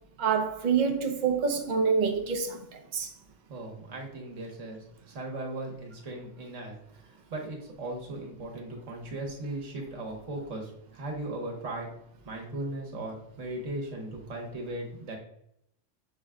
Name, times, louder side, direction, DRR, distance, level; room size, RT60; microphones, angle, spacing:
voice 1, 0.2-3.1, right 6 dB, 45° right, 0.7 m, -27 dB
voice 2, 3.5-11.9 12.2-15.2, right 1 dB, 85° right, 1.4 m, -38 dB
6.1 x 2.2 x 3.6 m
omnidirectional pair, 1.3 m